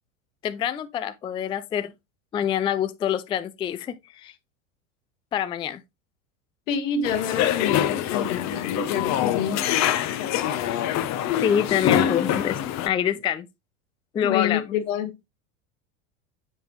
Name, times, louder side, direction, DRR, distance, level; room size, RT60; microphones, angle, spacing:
voice 1, 0.4-1.9 2.3-3.9 4.2-4.3 5.3-5.8 11.4-12.6 12.8-13.5 14.1-14.6, left 9 dB, 15° left, 0.3 m, -26 dB
voice 2, 6.7-9.6 14.2-15.1, left 7 dB, 75° left, 1.6 m, -27 dB
sound 1, 7.0-12.9, left 10 dB, 45° left, 0.9 m, -25 dB
7.2 x 5.2 x 3.1 m
hypercardioid pair, 100°, 39 cm